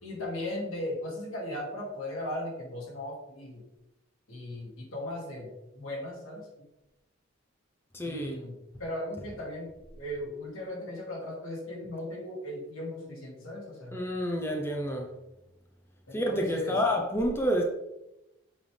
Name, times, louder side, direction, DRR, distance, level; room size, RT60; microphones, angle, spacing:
voice 1, 0.0-3.6 4.3-6.5 8.0-8.5 8.8-14.0 16.1-16.8, left 1 dB, 85° left, 2.7 m, -37 dB
voice 2, 7.9-8.4 13.9-15.2 16.1-17.6, equal, 10° left, 0.7 m, -29 dB
7.3 x 5.5 x 3.4 m
head